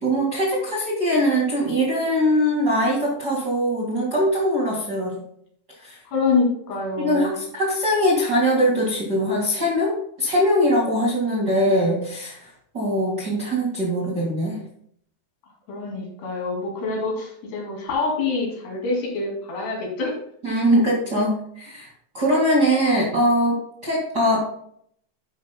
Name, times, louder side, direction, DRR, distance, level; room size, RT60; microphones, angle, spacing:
voice 1, 0.0-5.2 5.8-6.0 7.0-12.5 12.7-14.6 20.4-21.9 22.1-24.4, equal, 35° right, -4 dB, 1.6 m, -22 dB
voice 2, 6.1-7.3 15.7-20.2, left 4 dB, 75° left, -2 dB, 4.6 m, -26 dB
10.5 x 10.0 x 2.2 m, 0.67 s
omnidirectional pair, 4.8 m